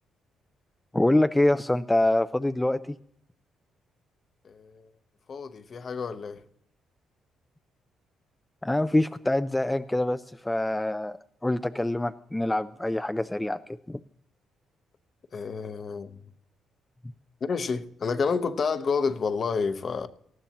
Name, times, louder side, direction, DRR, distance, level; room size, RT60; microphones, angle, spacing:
voice 1, 0.9-2.9 8.6-11.2 11.4-14.0, left 1 dB, 10° left, 0.4 m, -25 dB
voice 2, 4.4-4.9 5.3-6.4 15.3-16.1 17.4-20.1, left 5 dB, 45° left, 0.9 m, -29 dB
19.0 x 13.5 x 2.9 m
cardioid pair, 90°, 0 cm